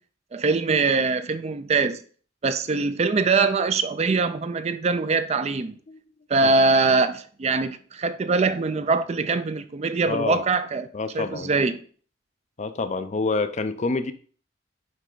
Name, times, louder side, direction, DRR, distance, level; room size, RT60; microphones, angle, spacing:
voice 1, 0.3-2.0 2.4-5.7 6.3-10.9 11.1-11.8, right 4 dB, 30° right, 0.4 m, -23 dB
voice 2, 10.1-10.4 10.9-11.5 12.6-14.1, left 3 dB, 35° left, 0.4 m, -27 dB
9.6 x 3.3 x 3.8 m
head